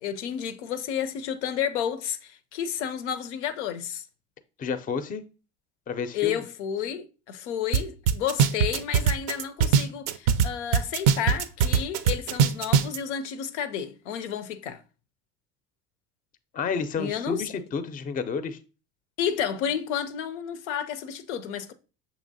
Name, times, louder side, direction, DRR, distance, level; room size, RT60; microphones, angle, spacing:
voice 1, 0.0-4.0 6.1-14.8 17.0-17.5 19.2-21.7, left 9 dB, 90° left, 0.5 m, -31 dB
voice 2, 4.6-5.2 5.9-6.4 16.5-18.6, left 5 dB, 25° left, 0.4 m, -30 dB
sound 1, 7.7-7.8 8.1-10.5 10.7-13.0, right 7 dB, 60° right, 0.4 m, -20 dB
6.3 x 2.9 x 2.6 m
hypercardioid pair, 80°, 34 cm